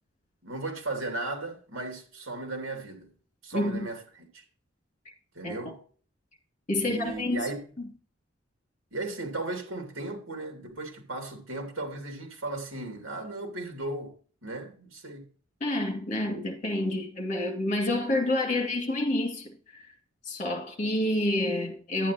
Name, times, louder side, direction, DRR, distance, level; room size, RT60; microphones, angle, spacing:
voice 1, 0.4-3.1 3.4-4.4 5.3-5.8 6.8-7.6 8.9-14.1 14.4-15.3, right 2 dB, 80° right, 2.6 m, -36 dB
voice 2, 3.5-3.9 5.4-5.5 6.7-7.5 7.8-7.9 15.6-19.5 20.3-22.1, left 1 dB, 40° left, 2.3 m, -28 dB
10.5 x 9.2 x 2.9 m
head